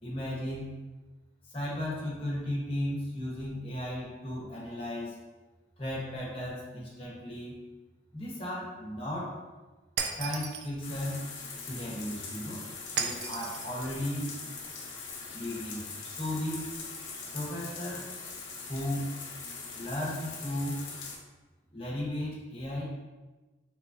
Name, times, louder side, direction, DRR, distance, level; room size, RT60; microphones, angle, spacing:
voice 1, 0.0-0.7 1.5-5.2 5.8-7.6 8.1-9.4 10.1-11.2 11.6-12.7 12.9-14.3 15.3-16.7 17.3-18.4 18.7-19.1 19.7-20.8 21.7-22.8, left 1 dB, 30° left, -5 dB, 1.0 m, -35 dB
Shatter, 10.0-10.7 13.0-13.7, right 6 dB, 60° right, 0.3 m, -34 dB
sound 1, 10.8-21.2, left 4 dB, 85° left, 0.7 m, -42 dB
3.8 x 3.2 x 2.6 m, 1.2 s
head